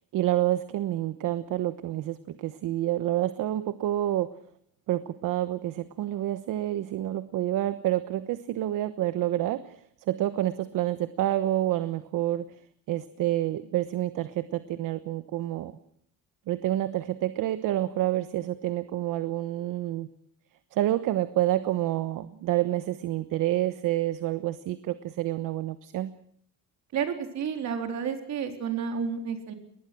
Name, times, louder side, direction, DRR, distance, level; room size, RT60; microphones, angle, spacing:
voice 1, 0.1-4.3 4.9-12.6 12.9-15.8 16.5-20.1 20.7-26.1, right 14 dB, 70° right, 12 dB, 1.2 m, -28 dB
voice 2, 26.9-29.5, right 7 dB, 55° right, 6 dB, 4.0 m, -31 dB
22.5 x 20.5 x 6.2 m, 0.68 s
cardioid pair, 175°, 33 cm